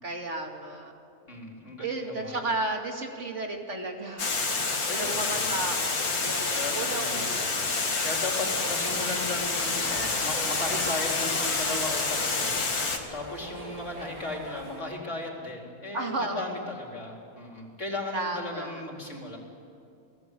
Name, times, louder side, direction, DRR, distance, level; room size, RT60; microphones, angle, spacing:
voice 1, 0.0-0.9 1.8-4.7 5.0-7.8 15.9-16.5 18.1-18.8, right 2 dB, 50° right, 2 dB, 2.5 m, -34 dB
voice 2, 1.3-2.4 4.9-5.5 6.5-7.3 8.0-12.5 13.1-19.4, left 2 dB, 50° left, 0 dB, 4.3 m, -36 dB
Water, 4.2-13.0, left 3 dB, 75° left, 2.6 m, -28 dB
sound 1, 8.9-14.8, right 1 dB, 30° right, 3.5 m, -41 dB
29.5 x 19.0 x 8.4 m, 2.6 s
omnidirectional pair, 1.6 m